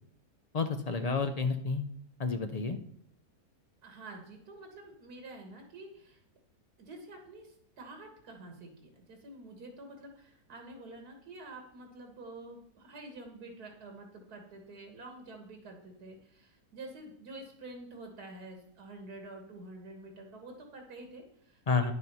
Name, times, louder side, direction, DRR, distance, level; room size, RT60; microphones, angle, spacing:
voice 1, 0.5-1.8 2.2-2.8 21.7-21.9, left 4 dB, 45° left, 8 dB, 0.5 m, -30 dB
voice 2, 3.8-6.2 6.8-21.9, right 2 dB, 85° right, 3 dB, 2.1 m, -48 dB
9.9 x 7.5 x 5.5 m, 0.68 s
omnidirectional pair, 1.6 m